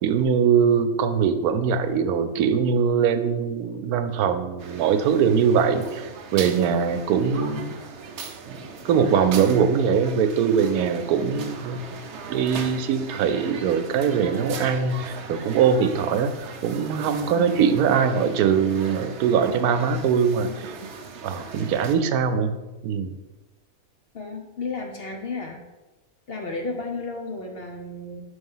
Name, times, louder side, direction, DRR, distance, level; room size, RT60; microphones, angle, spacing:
voice 1, 0.0-7.8 8.5-8.6 8.8-11.8 12.3-16.3 16.6-20.7 21.2-22.5 22.8-23.1, right 7 dB, 90° right, 9 dB, 1.1 m, -22 dB
sound 1, 4.6-21.9, right 5 dB, 60° right, 0.8 m, -39 dB
voice 2, 24.1-25.6 26.3-28.2, left 3 dB, 55° left, 2 dB, 0.8 m, -33 dB
6.1 x 3.5 x 5.4 m, 1.1 s
omnidirectional pair, 1.5 m